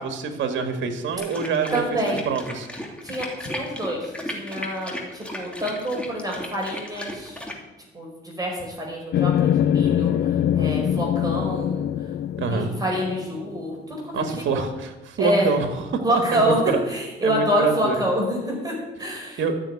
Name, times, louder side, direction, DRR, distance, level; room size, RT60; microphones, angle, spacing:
voice 1, 0.0-2.7 12.4-12.7 14.1-15.7 15.9-16.5 17.2-18.0 19.4-19.5, right 5 dB, 70° right, 7 dB, 1.7 m, -26 dB
sound 1, 1.1-7.6, left 1 dB, 5° left, 2.7 m, -35 dB
voice 2, 1.7-2.2 3.0-7.4 7.9-12.1 12.4-14.7 15.2-15.5 16.0-19.5, equal, 20° right, -1 dB, 4.8 m, -27 dB
sound 2, 9.1-13.6, left 10 dB, 55° left, 0.4 m, -23 dB
12.5 x 6.8 x 9.7 m, 1.1 s
cardioid pair, 90°, 20 cm